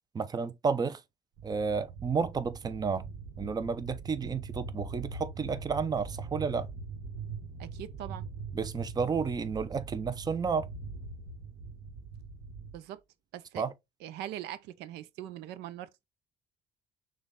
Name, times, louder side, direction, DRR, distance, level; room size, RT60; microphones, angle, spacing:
voice 1, 0.1-1.0 1.4-3.0 3.4-6.7 8.5-10.7 13.6-13.7, right 5 dB, 25° right, 0.5 m, -31 dB
sound 1, 1.4-12.8, right 4 dB, 70° right, 1.2 m, -42 dB
voice 2, 7.6-8.3 12.7-13.0 13.3-13.6 14.0-16.1, right 12 dB, 85° right, 0.5 m, -42 dB
6.2 x 2.3 x 3.5 m
cardioid pair, 110°, 17 cm